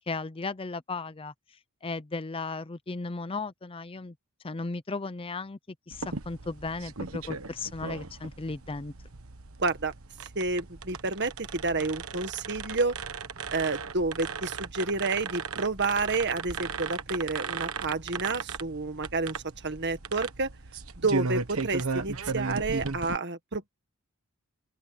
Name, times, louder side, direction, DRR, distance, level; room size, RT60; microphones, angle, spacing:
voice 1, 0.1-1.3 1.8-4.1 4.4-5.6 5.9-8.9, left 3 dB, 25° left, 0.6 m, -35 dB
sound 1, 5.9-23.2, right 4 dB, 70° right, 1.3 m, -36 dB
voice 2, 9.6-9.9 10.3-13.0 13.5-20.5 21.0-23.7, right 3 dB, 50° right, 1.8 m, -30 dB
head